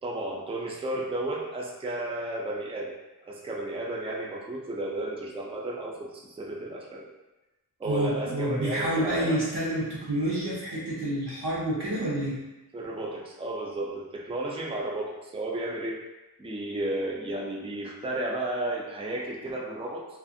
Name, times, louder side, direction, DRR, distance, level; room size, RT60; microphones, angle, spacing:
voice 1, 0.0-3.0 3.2-7.1 7.8-9.4 12.7-16.0 16.4-20.1, right 1 dB, 15° right, -2 dB, 0.4 m, -33 dB
voice 2, 7.8-12.3, right 1 dB, 85° right, -6 dB, 0.9 m, -28 dB
2.5 x 2.4 x 2.6 m, 1.0 s
wide cardioid pair, 75°, 39 cm